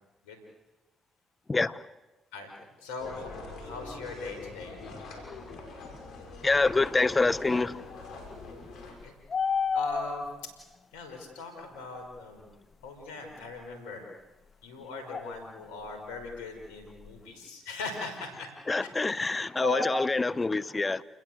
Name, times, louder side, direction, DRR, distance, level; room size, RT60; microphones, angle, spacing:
voice 1, 1.5-1.8 6.4-7.8 18.7-21.0, left 3 dB, 25° left, 1.2 m, -26 dB
voice 2, 2.8-4.8 8.8-9.1 9.7-10.3 10.9-12.5 12.8-14.1 14.6-18.5 19.6-19.9, left 3 dB, 85° left, 5.5 m, -39 dB
sound 1, 3.0-8.9, left 3 dB, 65° left, 6.6 m, -44 dB
sound 2, 8.9-10.4 12.8-12.9 15.1-15.5 15.9-16.0 16.2-17.2, left 6 dB, 45° left, 1.6 m, -30 dB
29.0 x 21.0 x 8.1 m
hypercardioid pair, 50°, 0 cm